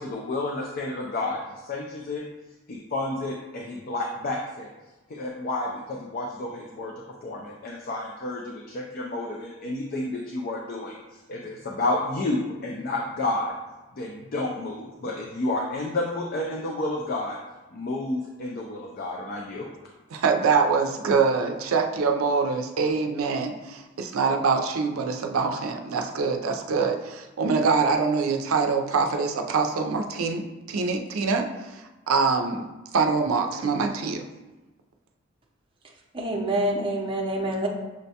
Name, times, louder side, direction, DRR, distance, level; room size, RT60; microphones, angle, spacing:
voice 1, 0.0-2.2 2.7-4.7 5.1-6.9 7.2-11.0 11.3-13.5 14.0-17.4 17.7-19.7, left 2 dB, 45° left, -1 dB, 0.4 m, -30 dB
voice 2, 20.1-32.7 32.9-34.2, right 4 dB, 90° right, 4 dB, 0.4 m, -24 dB
voice 3, 36.1-37.7, right 1 dB, 25° right, -1 dB, 0.6 m, -26 dB
6.3 x 2.2 x 2.7 m, 1.1 s
head